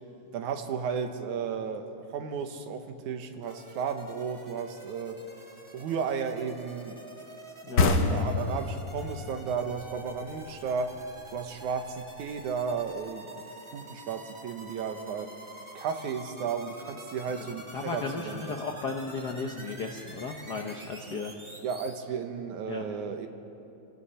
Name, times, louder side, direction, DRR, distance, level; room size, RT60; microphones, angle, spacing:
voice 1, 0.3-5.2 5.7-7.1 7.7-10.9 11.3-13.3 13.7-15.3 15.8-18.6 21.1-23.3, right 6 dB, 80° right, 7 dB, 2.6 m, -34 dB
sound 1, 3.4-22.0, right 1 dB, 15° right, 1.3 m, -48 dB
sound 2, 7.8-11.2, left 3 dB, 50° left, 1.3 m, -28 dB
voice 2, 17.7-21.3 22.7-22.8, left 4 dB, 70° left, 3 dB, 0.9 m, -34 dB
28.0 x 18.5 x 5.7 m, 2.9 s
omnidirectional pair, 3.4 m